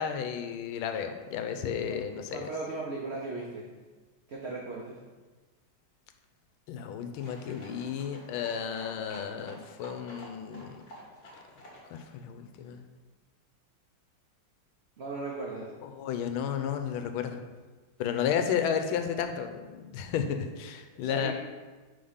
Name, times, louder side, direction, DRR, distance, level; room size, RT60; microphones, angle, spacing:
voice 1, 0.0-2.5 6.7-10.8 11.9-12.8 15.9-17.4 18.0-21.3, left 8 dB, 80° left, 7 dB, 1.4 m, -32 dB
voice 2, 2.3-3.7 4.3-5.0 15.0-15.7 21.0-21.3, right 3 dB, 85° right, -3 dB, 0.5 m, -37 dB
sound 1, 7.2-12.1, left 1 dB, 40° left, 1.5 m, -50 dB
5.1 x 3.6 x 5.5 m, 1.3 s
omnidirectional pair, 2.2 m